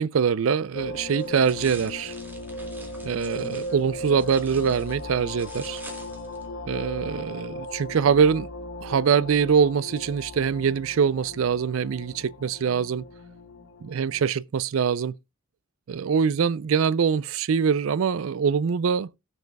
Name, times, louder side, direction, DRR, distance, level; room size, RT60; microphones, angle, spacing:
voice 1, 0.0-2.1 3.0-5.8 6.7-8.5 8.8-13.0 13.9-15.1 15.9-19.1, right 6 dB, 80° right, 0.4 m, -23 dB
sound 1, 0.7-14.3, left 1 dB, 60° left, 1.8 m, -37 dB
sound 2, 1.2-6.5, right 2 dB, 10° right, 2.2 m, -47 dB
18.5 x 6.6 x 2.2 m
head